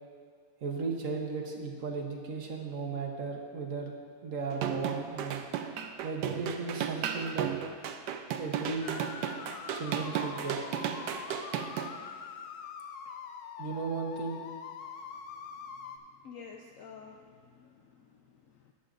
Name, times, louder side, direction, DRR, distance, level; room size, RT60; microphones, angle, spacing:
voice 1, 0.6-3.9 4.2-5.4 6.0-7.5 8.4-9.0 9.7-10.6 13.6-14.4, right 4 dB, 50° right, 0 dB, 1.3 m, -35 dB
sound 1, 4.5-11.9, right 8 dB, 75° right, 1.2 m, -34 dB
sound 2, 8.8-16.0, left 7 dB, 90° left, 1.3 m, -44 dB
voice 2, 16.2-18.7, left 6 dB, 70° left, 2 dB, 0.7 m, -50 dB
13.5 x 10.0 x 2.5 m, 2.1 s
omnidirectional pair, 1.9 m